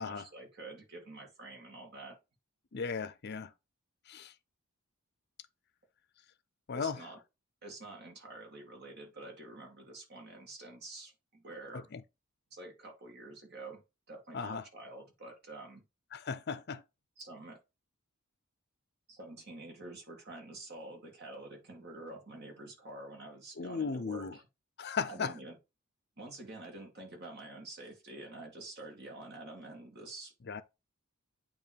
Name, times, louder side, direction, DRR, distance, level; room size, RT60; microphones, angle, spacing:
voice 1, 0.0-2.2 6.7-7.2 7.6-11.9 12.5-15.8 17.2-17.6 19.1-24.4 25.1-25.6 26.2-30.3, right 2 dB, 50° right, 2.1 m, -48 dB
voice 2, 2.7-3.5 4.1-4.3 6.7-7.0 11.7-12.0 14.3-14.6 16.1-16.8 23.6-24.3 24.8-25.3 30.5-30.6, left 5 dB, 50° left, 0.6 m, -36 dB
8.7 x 3.0 x 4.5 m
head